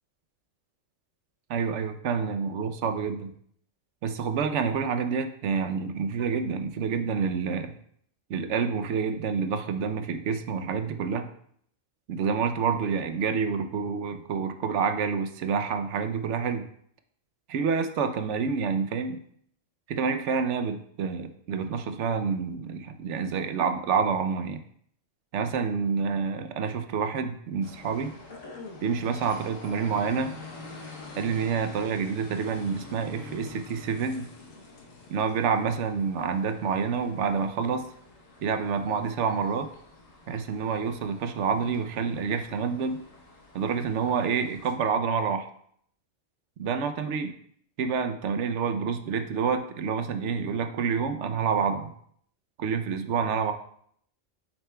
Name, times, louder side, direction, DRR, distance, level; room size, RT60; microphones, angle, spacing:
voice 1, 1.5-3.3 4.0-7.7 8.3-11.3 12.1-16.7 17.5-19.2 19.9-24.6 25.3-28.1 28.8-30.4 31.2-34.3 35.1-37.9 38.4-39.7 40.3-43.0 43.5-45.5 46.6-47.3 47.8-51.9 52.6-53.5, right 6 dB, 70° right, 8 dB, 0.9 m, -28 dB
sound 1, 27.6-44.8, left 3 dB, 80° left, 1.4 m, -47 dB
8.8 x 7.2 x 2.2 m, 0.66 s
omnidirectional pair, 1.3 m